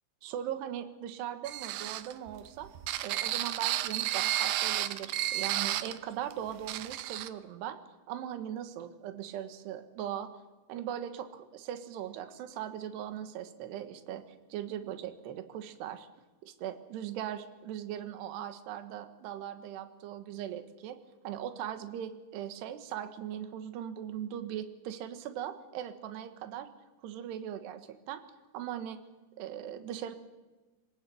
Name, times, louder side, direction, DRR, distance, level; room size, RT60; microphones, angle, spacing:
voice 1, 0.2-2.7 3.0-7.8 8.1-10.3 10.7-14.2 14.5-16.1 16.4-21.0 21.2-26.7 27.0-28.2 28.5-29.0 29.4-30.2, right 10 dB, 70° right, 9 dB, 3.3 m, -39 dB
sound 1, 1.4-6.0 6.3-6.4 6.7-7.3, right 13 dB, 90° right, 2.0 m, -32 dB
24.0 x 19.5 x 8.3 m, 1.2 s
omnidirectional pair, 5.3 m